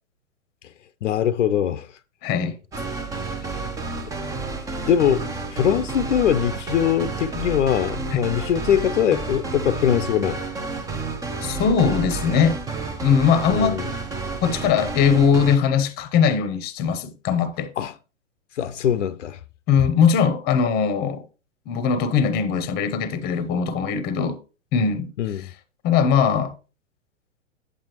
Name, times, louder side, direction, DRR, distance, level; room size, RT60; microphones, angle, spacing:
voice 1, 1.0-1.9 4.9-10.4 13.5-13.9 17.8-17.9 18.6-19.4 25.2-25.5, left 9 dB, 75° left, 0.7 m, -22 dB
voice 2, 2.2-2.6 8.1-8.2 11.4-12.6 13.0-13.8 14.4-17.7 19.7-21.2 21.7-24.4 24.7-25.1 25.8-26.5, left 6 dB, 25° left, 0.9 m, -20 dB
sound 1, 2.7-15.6, right 3 dB, 10° right, 0.6 m, -30 dB
8.5 x 7.6 x 3.0 m
hypercardioid pair, 120°, 37 cm